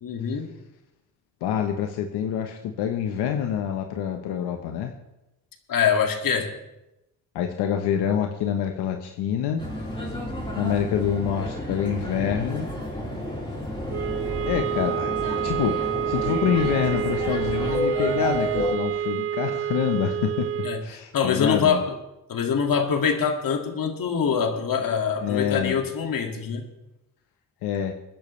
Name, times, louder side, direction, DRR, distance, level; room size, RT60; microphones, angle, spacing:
voice 1, 0.0-0.5 5.7-6.5 20.6-21.8 22.3-26.6, left 6 dB, 60° left, 3 dB, 2.2 m, -24 dB
voice 2, 1.4-4.9 7.3-9.7 10.6-12.7 14.4-20.5 20.8-21.8 25.2-25.8 27.6-27.9, left 9 dB, 90° left, 4 dB, 1.0 m, -26 dB
sound 1, 9.6-18.7, equal, 15° left, 4.1 m, -31 dB
sound 2, 13.9-20.9, right 10 dB, 35° right, 0.4 m, -28 dB
22.5 x 10.5 x 3.2 m, 0.93 s
cardioid pair, 85°, 39 cm